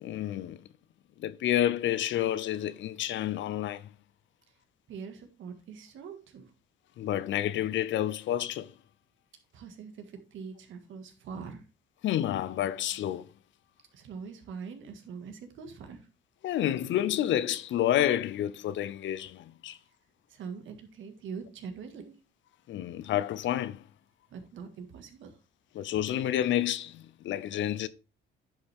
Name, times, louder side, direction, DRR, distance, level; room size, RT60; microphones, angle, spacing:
voice 1, 0.0-0.6 1.2-3.9 7.0-8.7 12.0-13.3 16.4-19.8 22.7-23.8 25.7-27.9, left 12 dB, 70° left, 0.6 m, -29 dB
voice 2, 4.9-6.5 9.5-11.6 13.9-16.1 20.3-22.1 24.3-25.4, right 6 dB, 80° right, 1.8 m, -43 dB
10.0 x 5.5 x 3.6 m
cardioid pair, 90°, 20 cm